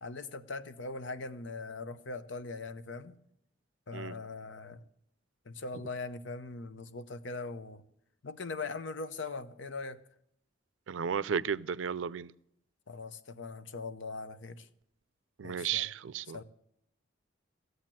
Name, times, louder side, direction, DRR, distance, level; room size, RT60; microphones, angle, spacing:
voice 1, 0.0-3.2 3.9-4.8 5.5-7.8 8.2-10.0 12.9-14.7 15.4-15.9 16.3-16.4, left 3 dB, 80° left, 0.8 m, -41 dB
voice 2, 10.9-12.3 15.4-16.4, right 7 dB, 90° right, 0.4 m, -33 dB
15.0 x 8.0 x 7.5 m
head